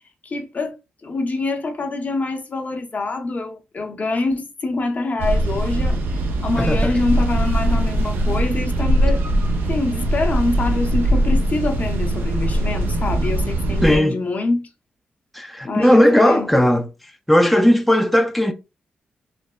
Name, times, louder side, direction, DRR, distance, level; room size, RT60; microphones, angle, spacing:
voice 1, 0.2-0.8 1.0-6.0 6.4-9.2 9.7-14.7 15.7-16.5, left 3 dB, 45° left, 0.6 m, -25 dB
sound 1, 5.2-14.0, right 1 dB, 65° right, 0.5 m, -21 dB
voice 2, 6.6-6.9 13.8-14.2 15.3-16.9 17.3-18.5, equal, ahead, 0.4 m, -16 dB
3.1 x 2.0 x 2.2 m
hypercardioid pair, 40°, 4 cm